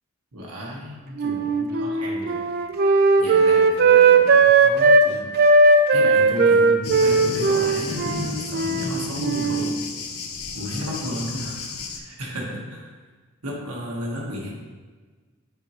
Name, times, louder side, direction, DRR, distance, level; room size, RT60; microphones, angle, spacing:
voice 1, 0.3-2.5 3.2-5.3 5.6-9.8 10.5-11.6 11.9-12.9 13.4-14.5, equal, 85° right, -3 dB, 1.5 m, -33 dB
Wind instrument woodwind instrument, 1.2-5.1 5.4-8.9 9.2-9.7, right 3 dB, 45° right, 0.4 m, -17 dB
Thunder, 6.8-12.0, left 4 dB, 75° left, 0.7 m, -33 dB
7.2 x 5.1 x 3.1 m, 1.4 s
head